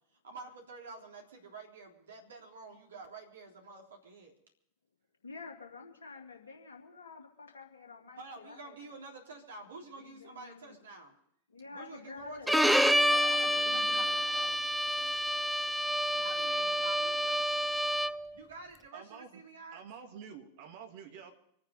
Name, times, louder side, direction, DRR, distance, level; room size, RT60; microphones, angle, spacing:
voice 1, 0.2-4.3 8.2-11.1 11.7-14.6 16.2-17.4 18.3-19.8, right 3 dB, 65° right, 0 dB, 3.5 m, -48 dB
voice 2, 5.2-8.8 9.9-10.8 11.5-14.6 16.1-17.1, left 4 dB, 70° left, 2 dB, 2.8 m, -49 dB
Bowed string instrument, 12.5-18.3, equal, ahead, 0.6 m, -28 dB
voice 3, 18.9-19.4 19.7-21.3, right 7 dB, 50° right, 4 dB, 2.6 m, -48 dB
26.0 x 9.5 x 5.2 m, 0.74 s
figure-of-eight pair, 90°, 0 cm